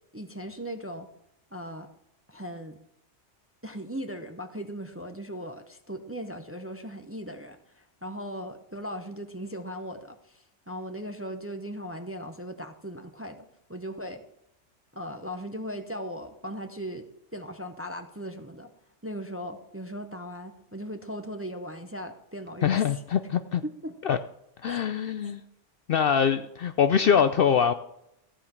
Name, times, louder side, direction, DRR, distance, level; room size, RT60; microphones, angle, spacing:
voice 1, 0.1-1.1 1.5-1.9 2.3-2.8 3.6-14.2 14.9-17.1 17.3-18.7 19.0-23.0 23.6-23.9 24.7-24.8 25.2-25.3, equal, 15° right, 0.6 m, -38 dB
voice 2, 22.6-23.6 24.0-24.2 24.6-25.4 25.9-27.7, left 7 dB, 60° left, 0.6 m, -23 dB
14.5 x 5.1 x 7.3 m
omnidirectional pair, 1.3 m